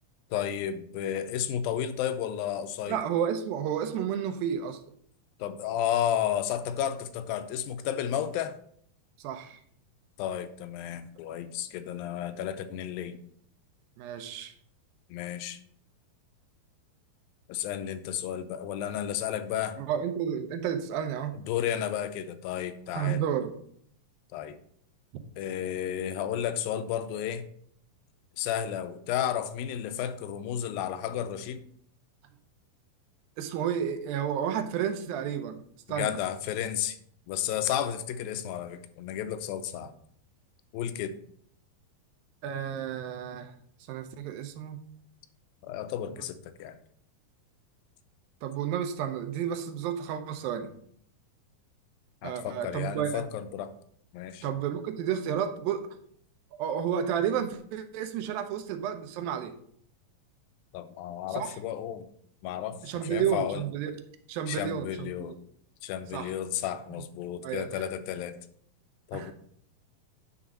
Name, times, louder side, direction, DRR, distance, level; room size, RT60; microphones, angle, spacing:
voice 1, 0.3-3.0 5.4-8.5 10.2-13.2 15.1-15.6 17.5-19.8 21.3-23.2 24.3-24.6 25.4-27.5 28.4-31.6 35.9-37.0 37.3-39.9 40.7-41.2 45.6-46.8 52.2-53.7 54.1-54.5 60.7-62.1 62.4-63.6 64.5-65.4 65.8-68.4 69.1-69.3, left 10 dB, 80° left, 2.4 m, -32 dB
voice 2, 2.9-4.8 9.2-9.6 14.0-14.5 19.8-21.3 22.9-23.5 33.4-35.6 35.9-36.2 42.4-43.5 43.9-44.8 48.4-50.7 52.2-53.2 54.4-55.9 56.6-59.6 61.3-61.5 62.8-63.9 64.3-65.4 66.1-66.3 66.9-67.0 67.4-67.8 69.1-69.3, right 9 dB, 80° right, 2.5 m, -31 dB
9.7 x 3.9 x 6.0 m
omnidirectional pair, 4.2 m